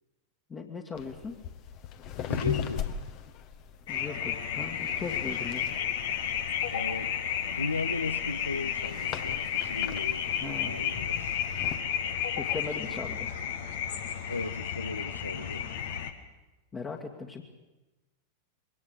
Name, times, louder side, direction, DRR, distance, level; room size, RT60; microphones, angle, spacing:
voice 1, 0.5-1.3 3.9-5.7 10.4-10.9 12.4-13.3 16.7-17.4, left 4 dB, 20° left, 1 dB, 2.0 m, -38 dB
sound 1, 0.9-11.8, left 9 dB, 40° left, 1.6 m, -40 dB
voice 2, 2.2-2.9 6.7-7.2 7.5-11.4 14.3-15.7, left 3 dB, 80° left, 15 dB, 0.7 m, -36 dB
sound 2, 3.9-16.1, left 9 dB, 55° left, 1.7 m, -32 dB
22.5 x 19.0 x 8.7 m, 1.1 s
figure-of-eight pair, 90°, 0 cm